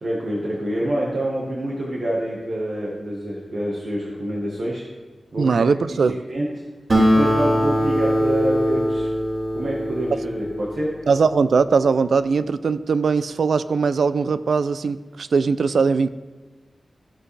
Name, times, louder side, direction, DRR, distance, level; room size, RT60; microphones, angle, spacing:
voice 1, 0.0-4.8 5.3-5.6 5.9-6.5 6.9-9.1 9.5-10.9, right 1 dB, 70° right, -4 dB, 1.3 m, -26 dB
voice 2, 5.4-6.2 11.1-16.1, right 5 dB, 85° right, 14 dB, 0.3 m, -20 dB
Acoustic guitar, 6.9-11.7, equal, 50° right, 1.9 m, -22 dB
14.5 x 5.0 x 3.3 m, 1.3 s
wide cardioid pair, 85°, 0 cm